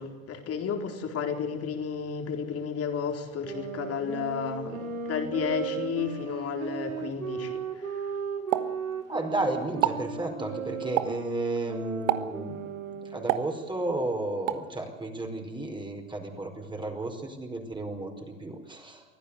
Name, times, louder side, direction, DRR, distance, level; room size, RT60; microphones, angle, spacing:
voice 1, 0.0-8.1, left 6 dB, 35° left, 5 dB, 4.2 m, -32 dB
sound 1, 3.4-13.4, right 5 dB, 90° right, 2.3 m, -36 dB
Explosion, 8.5-9.4 9.7-10.1 11.0-11.3 12.1-12.5 13.3-14.0 14.5-14.7, right 14 dB, 65° right, 1.5 m, -29 dB
voice 2, 9.1-19.0, right 2 dB, 10° right, 3 dB, 4.9 m, -33 dB
24.5 x 15.5 x 8.4 m, 1.2 s
hypercardioid pair, 90°, 39 cm